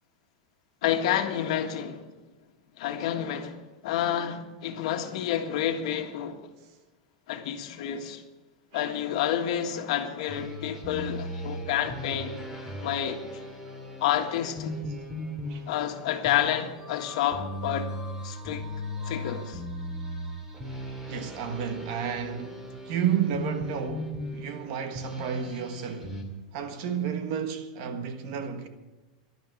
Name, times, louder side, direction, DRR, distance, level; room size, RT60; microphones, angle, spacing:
voice 1, 0.8-2.1 2.8-6.5 7.3-8.2 8.7-12.4 12.8-13.2 14.0-14.8 15.7-18.0 18.2-18.6 19.0-19.6, left 10 dB, 65° left, 1.7 m, -29 dB
sound 1, 10.3-26.2, equal, 10° right, 2.3 m, -38 dB
voice 2, 21.1-26.2 26.5-28.7, right 8 dB, 50° right, 1.4 m, -32 dB
11.5 x 11.0 x 8.1 m
supercardioid pair, 155°, 4 cm